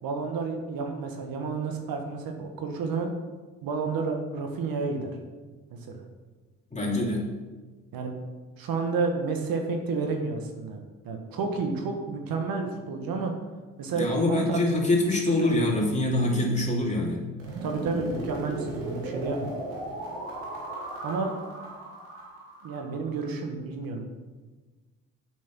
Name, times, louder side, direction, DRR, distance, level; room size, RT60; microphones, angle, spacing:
voice 1, 0.0-3.1 3.6-5.1 5.7-6.0 7.9-8.1 8.6-10.8 11.0-13.3 13.8-14.6 15.4-15.7 17.6-19.5 21.0-21.3 22.6-24.1, right 4 dB, 65° right, 3 dB, 1.4 m, -30 dB
voice 2, 6.7-7.3 13.9-17.2, left 2 dB, 20° left, -3 dB, 2.8 m, -25 dB
sound 1, 17.4-23.3, right 2 dB, 90° right, 2.3 m, -37 dB
7.1 x 6.2 x 6.0 m, 1.3 s
supercardioid pair, 65°, 38 cm